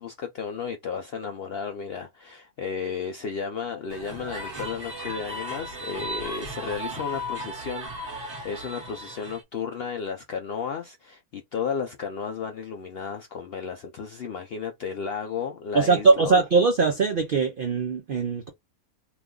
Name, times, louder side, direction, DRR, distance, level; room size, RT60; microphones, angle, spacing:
voice 1, 0.0-16.4, left 6 dB, 70° left, 0.5 m, -33 dB
sound 1, 3.9-9.4, equal, 40° right, 1.4 m, -36 dB
voice 2, 15.7-18.5, right 4 dB, 65° right, 0.5 m, -21 dB
3.0 x 2.3 x 3.6 m
omnidirectional pair, 1.5 m